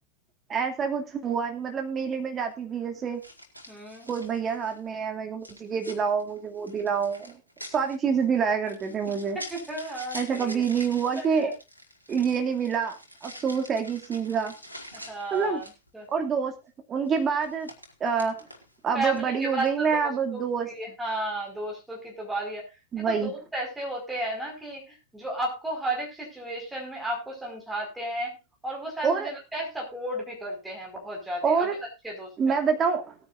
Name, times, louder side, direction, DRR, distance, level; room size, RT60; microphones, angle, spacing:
voice 1, 0.5-3.2 4.1-7.4 7.7-9.4 10.1-11.5 12.1-14.5 15.3-15.6 16.1-16.5 16.9-17.7 18.0-18.4 18.8-20.7 22.9-23.3 29.0-29.3 31.4-31.8 32.4-33.1, right 6 dB, 25° right, 4 dB, 2.6 m, -27 dB
sound 1, 1.9-2.1 3.2-4.9 5.4-15.9 17.1-18.8 19.1-19.8, equal, 90° left, 2.3 m, -46 dB
voice 2, 3.7-4.1 9.5-10.6 11.2-11.5 14.9-15.6 15.9-16.1 18.9-22.7 23.1-28.4 28.6-31.7 32.0-32.6, right 1 dB, 5° right, -1 dB, 5.2 m, -33 dB
18.5 x 9.7 x 2.6 m, 0.26 s
figure-of-eight pair, 90°, 0 cm